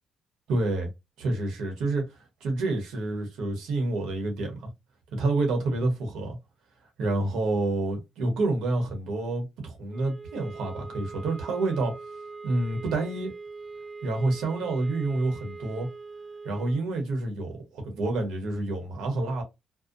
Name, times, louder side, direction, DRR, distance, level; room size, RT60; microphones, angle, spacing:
voice 1, 0.5-0.9 1.2-2.0 2.4-4.7 5.1-6.4 7.0-11.9 12.4-13.3 14.0-15.9 16.4-19.4, right 2 dB, 85° right, 1.1 m, -28 dB
sound 1, 9.9-16.9, right 4 dB, 20° right, 0.3 m, -42 dB
2.7 x 2.2 x 2.5 m
cardioid pair, 90°, 0 cm